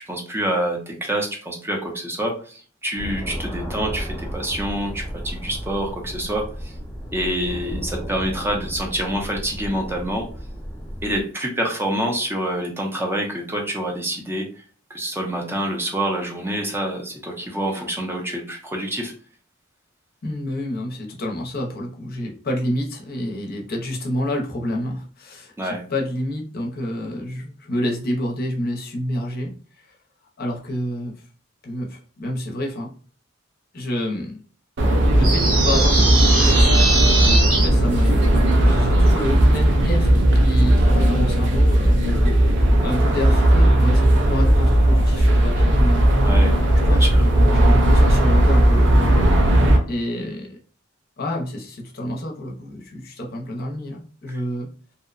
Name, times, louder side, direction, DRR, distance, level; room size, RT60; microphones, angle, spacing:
voice 1, 0.1-6.7 7.1-10.2 11.0-14.4 14.9-19.1 25.6-25.8 46.2-46.5 46.9-47.2, right 1 dB, 10° right, 1 dB, 0.5 m, -26 dB
sound 1, 3.0-11.2, equal, 10° left, 0.8 m, -33 dB
voice 2, 20.2-29.9 30.4-31.1 31.6-32.9 33.7-34.4 35.2-36.8 37.6-46.1 46.8-49.4 49.9-50.6 51.2-54.7, left 1 dB, 50° left, 1 dB, 0.6 m, -29 dB
sound 2, 34.8-49.8, right 1 dB, 60° right, 0.5 m, -16 dB
sound 3, 35.2-37.7, right 3 dB, 85° right, 1.0 m, -21 dB
2.7 x 2.1 x 2.4 m, 0.41 s
head